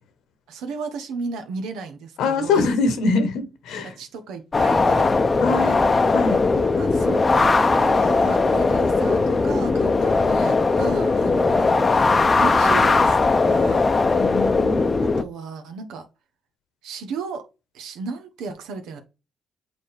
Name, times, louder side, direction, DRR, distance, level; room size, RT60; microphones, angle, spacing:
voice 1, 0.5-2.7 3.8-5.8 6.5-13.9 15.0-16.0 16.8-17.4 17.7-19.0, right 5 dB, 90° right, 1.1 m, -34 dB
voice 2, 2.2-3.9 5.4-6.4 14.2-14.9, left 4 dB, 85° left, 1.2 m, -23 dB
sound 1, 4.5-15.2, left 3 dB, 30° left, 0.6 m, -19 dB
7.6 x 4.2 x 3.4 m
cardioid pair, 90°, 0 cm